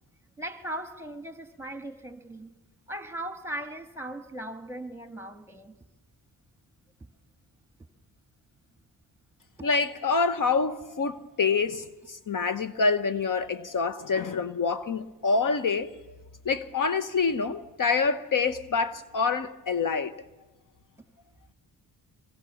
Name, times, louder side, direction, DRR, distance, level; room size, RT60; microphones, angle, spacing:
voice 1, 0.4-2.5 2.9-5.8, right 1 dB, 5° right, 1.9 m, -38 dB
voice 2, 9.6-16.0 16.4-20.2, left 4 dB, 50° left, 1.0 m, -26 dB
26.5 x 23.0 x 7.1 m
cardioid pair, 70°, 40 cm